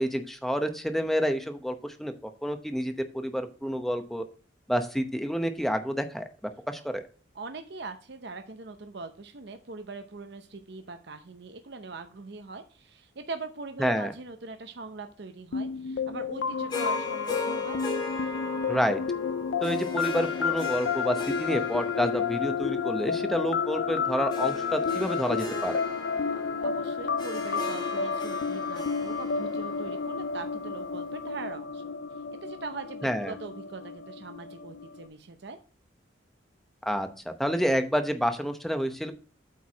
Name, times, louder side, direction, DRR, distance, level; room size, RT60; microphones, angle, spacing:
voice 1, 0.0-4.2 4.7-7.0 13.8-14.1 18.7-19.0 19.6-25.8 33.0-33.4 36.8-39.1, equal, ahead, 7 dB, 0.8 m, -29 dB
voice 2, 7.3-17.8 26.6-31.8 32.4-35.6, right 3 dB, 60° right, 7 dB, 0.7 m, -41 dB
sound 1, 15.5-35.1, left 6 dB, 65° left, 0.5 m, -31 dB
Harp, 16.7-31.1, left 2 dB, 20° left, 1.3 m, -39 dB
8.3 x 4.7 x 4.6 m, 0.39 s
head